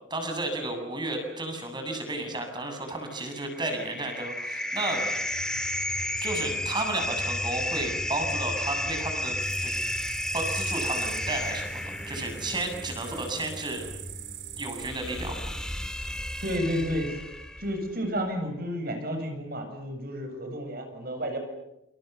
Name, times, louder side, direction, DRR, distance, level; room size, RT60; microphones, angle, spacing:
voice 1, 0.1-5.0 6.2-9.8 10.3-13.9 14.6-15.4, right 2 dB, 25° right, 4 dB, 7.7 m, -33 dB
sound 1, 3.2-17.8, left 1 dB, 5° left, 3.0 m, -33 dB
sound 2, 9.4-16.6, right 11 dB, 85° right, 4.3 m, -43 dB
voice 2, 16.4-17.1 17.6-21.4, equal, 50° right, 5 dB, 7.6 m, -31 dB
29.0 x 29.0 x 7.0 m, 0.86 s
head